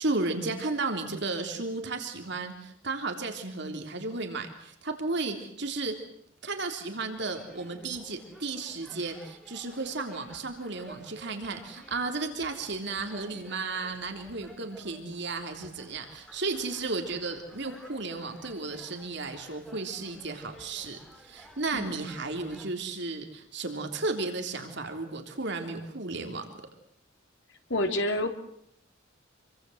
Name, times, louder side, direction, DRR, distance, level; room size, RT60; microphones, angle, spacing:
voice 1, 0.0-6.0 6.4-26.5, right 3 dB, 60° right, 5 dB, 3.5 m, -34 dB
sound 1, 7.2-22.7, equal, 5° left, 5.4 m, -54 dB
voice 2, 21.7-22.0 27.7-28.3, left 1 dB, 65° left, 6 dB, 3.5 m, -28 dB
27.5 x 24.5 x 8.0 m, 0.68 s
head